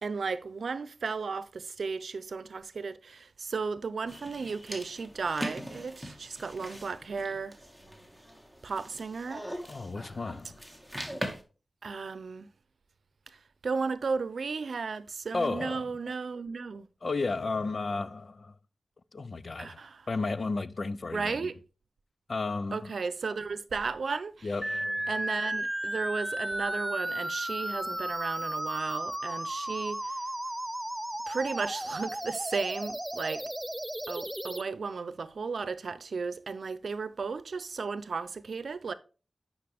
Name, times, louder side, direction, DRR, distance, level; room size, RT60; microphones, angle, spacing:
voice 1, 0.0-7.6 8.6-9.5 11.8-12.5 13.6-16.9 19.6-20.1 21.1-21.6 22.7-24.5 25.1-30.1 31.3-33.4 34.1-38.9, right 4 dB, 85° right, 0.6 m, -34 dB
sound 1, 4.1-11.4, equal, 5° left, 2.0 m, -41 dB
voice 2, 9.7-10.6 15.3-15.8 17.0-18.5 19.1-19.8 20.1-21.5 22.3-22.9 24.4-25.1, left 3 dB, 60° left, 0.5 m, -33 dB
sound 2, 24.6-34.6, right 1 dB, 15° right, 0.3 m, -34 dB
9.4 x 5.6 x 3.5 m
cardioid pair, 55°, 0 cm